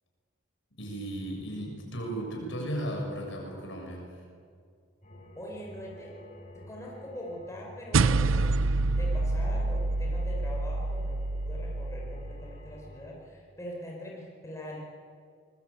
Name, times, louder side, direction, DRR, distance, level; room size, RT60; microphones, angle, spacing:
voice 1, 0.8-4.2, right 1 dB, 65° left, 1 dB, 7.0 m, -35 dB
sound 1, 5.0-13.1, left 1 dB, 35° left, 5.6 m, -50 dB
voice 2, 5.4-6.2 6.5-8.6 8.9-14.8, equal, 15° left, -2 dB, 4.7 m, -42 dB
sound 2, 7.9-12.6, right 3 dB, 75° right, 0.6 m, -27 dB
25.5 x 21.5 x 8.6 m, 2.1 s
head